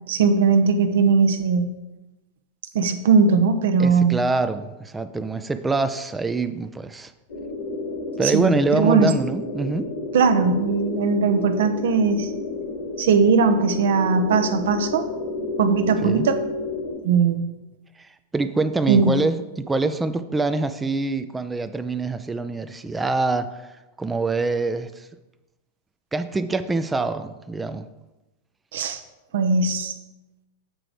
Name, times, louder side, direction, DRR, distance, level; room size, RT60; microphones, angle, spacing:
voice 1, 0.1-1.7 2.7-4.2 8.2-9.1 10.1-12.3 13.0-15.1 15.6-16.4 17.0-17.4 18.9-19.2 28.7-29.0 29.3-29.9, right 5 dB, 60° right, 9 dB, 0.7 m, -19 dB
voice 2, 3.8-7.1 8.2-9.9 16.0-16.3 18.0-23.7 24.0-25.1 26.1-27.8, right 3 dB, 10° right, 10 dB, 0.4 m, -25 dB
sound 1, 7.3-17.0, left 3 dB, 60° left, 1.5 m, -31 dB
7.5 x 4.9 x 4.8 m, 1.0 s
figure-of-eight pair, 90°, 0 cm